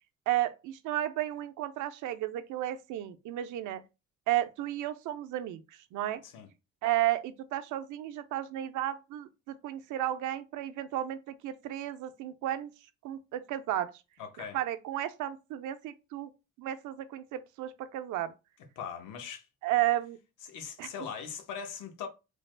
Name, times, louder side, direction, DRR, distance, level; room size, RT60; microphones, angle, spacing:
voice 1, 0.3-3.8 4.3-5.6 5.9-6.2 6.8-12.7 13.0-13.9 14.5-16.3 16.6-18.3 19.6-20.2 20.8-20.9, right 13 dB, 85° right, 0.5 m, -33 dB
voice 2, 14.2-14.6 18.8-19.5 20.4-22.1, left 7 dB, 85° left, 0.9 m, -40 dB
3.3 x 2.1 x 3.2 m
cardioid pair, 90°, 30 cm